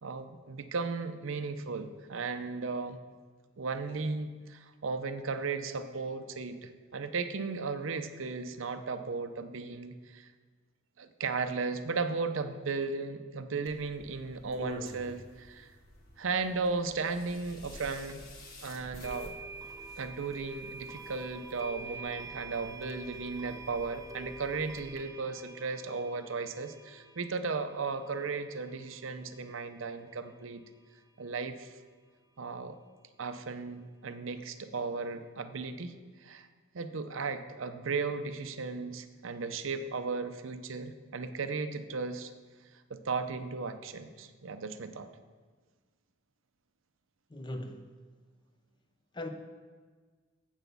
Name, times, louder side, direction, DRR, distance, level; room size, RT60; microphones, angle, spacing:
voice 1, 0.0-3.0 3.6-10.3 11.0-15.7 16.2-18.2 18.6-19.4 20.0-30.6 31.2-31.7 32.4-32.8 33.2-36.5 36.7-42.3 42.9-45.1, right 4 dB, 70° right, 9 dB, 0.6 m, -36 dB
sound 1, 13.7-25.0, equal, 45° left, 1.4 m, -49 dB
sound 2, 18.1-18.2 19.0-30.0, right 3 dB, 15° right, 0.4 m, -47 dB
voice 2, 47.3-47.9 49.1-49.3, left 1 dB, 20° left, 6 dB, 0.7 m, -39 dB
8.0 x 6.0 x 6.8 m, 1.5 s
head